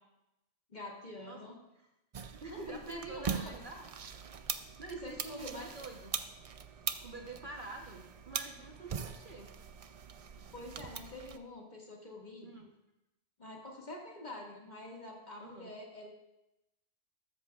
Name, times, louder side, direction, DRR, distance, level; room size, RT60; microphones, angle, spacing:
voice 1, 0.7-1.6 2.5-3.5 5.0-5.7 10.5-12.5 13.4-16.1, left 1 dB, 35° left, -1 dB, 2.0 m, -46 dB
sound 1, 2.1-11.4, right 6 dB, 60° right, 0.3 m, -42 dB
voice 2, 2.3-3.9 4.8-6.2 7.0-9.5 12.4-12.7 15.4-15.7, right 3 dB, 45° right, 2 dB, 1.1 m, -47 dB
13.5 x 13.0 x 2.4 m, 0.91 s
omnidirectional pair, 1.3 m